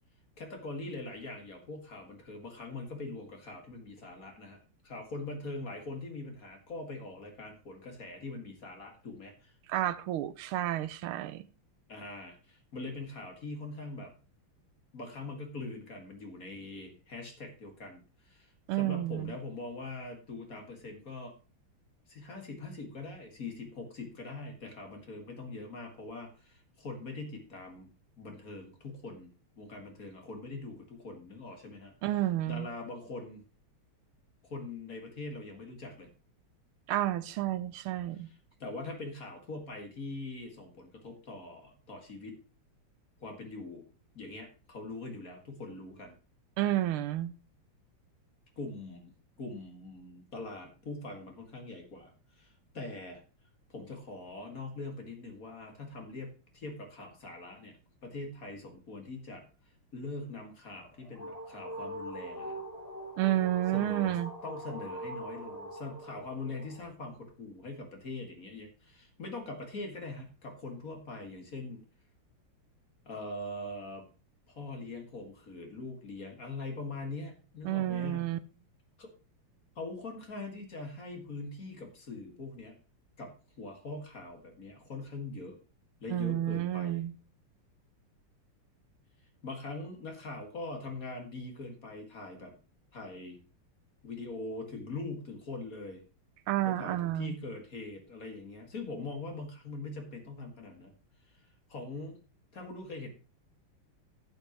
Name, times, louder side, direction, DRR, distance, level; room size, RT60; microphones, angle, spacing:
voice 1, 0.4-9.6 11.9-14.1 14.9-21.3 22.1-27.9 28.2-31.9 32.5-33.4 34.4-36.1 38.1-42.4 43.2-43.8 44.1-46.2 48.6-49.1 49.4-53.2 53.7-57.8 58.0-59.4 59.9-62.6 63.7-64.2 64.4-71.8 73.1-74.0 74.5-78.3 79.0-79.1 79.8-82.8 83.2-83.3 83.6-85.6 86.0-87.0 89.4-92.6 92.9-93.4 94.0-96.0 96.6-100.9 101.3-101.4 101.7-102.2 102.5-103.1, left 2 dB, 40° left, 2.3 m, -42 dB
voice 2, 9.7-11.5 18.7-19.3 32.0-32.7 36.9-38.3 46.6-47.3 63.2-64.3 77.6-78.4 86.1-87.1 96.5-97.4, right 14 dB, 80° right, 1.5 m, -30 dB
sound 1, 60.8-66.9, equal, 20° left, 1.8 m, -43 dB
11.5 x 8.8 x 3.0 m
omnidirectional pair, 2.4 m